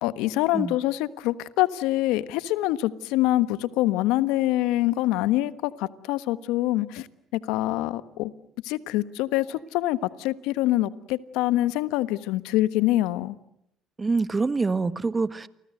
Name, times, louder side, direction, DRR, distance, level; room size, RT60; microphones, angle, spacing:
voice 1, 0.0-7.1 7.3-8.3 8.6-13.4, left 16 dB, 80° left, 14 dB, 1.3 m, -25 dB
voice 2, 14.0-15.5, right 4 dB, 25° right, 14 dB, 1.6 m, -25 dB
30.0 x 24.5 x 7.9 m, 0.79 s
supercardioid pair, 70°, 0 cm